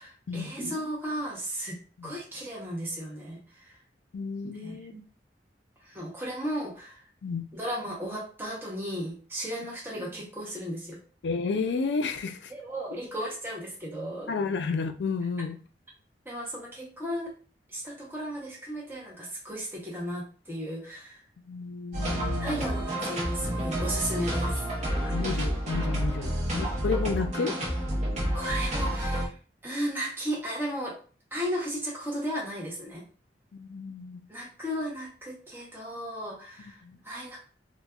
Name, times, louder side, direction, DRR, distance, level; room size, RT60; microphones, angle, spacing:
voice 1, 0.0-1.8 2.0-3.8 4.6-5.0 5.8-7.0 7.5-11.0 12.5-14.3 16.2-17.3 17.7-21.2 22.4-24.6 26.2-26.5 28.3-29.4 29.6-31.0 31.3-33.0 34.3-37.4, equal, 15° right, 0.8 m, -35 dB
voice 2, 4.1-4.9 7.2-7.4 11.2-12.5 14.3-15.6 21.4-22.9 25.0-27.5 33.5-34.2 36.8-37.0, left 4 dB, 80° left, 0.4 m, -32 dB
sound 1, 21.9-29.3, right 1 dB, 40° right, 0.9 m, -29 dB
4.1 x 2.2 x 2.3 m
head